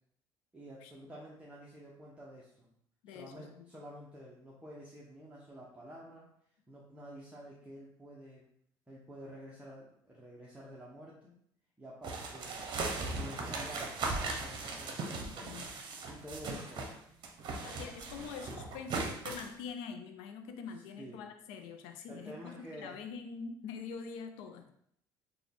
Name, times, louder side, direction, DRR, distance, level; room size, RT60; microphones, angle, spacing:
voice 1, 0.5-2.7 3.1-6.3 6.7-8.5 8.9-11.3 11.8-12.7 13.0-15.7 16.1-17.0 21.0-21.2 22.1-23.0, equal, 10° right, -5 dB, 0.8 m, -50 dB
voice 2, 3.0-3.7 15.4-15.7 17.6-22.5 22.8-24.7, left 6 dB, 80° left, 6 dB, 0.5 m, -44 dB
sound 1, 12.0-16.9 17.2-19.5, right 3 dB, 55° right, 0.8 m, -38 dB
3.9 x 2.3 x 3.4 m, 0.70 s
supercardioid pair, 85°, 9 cm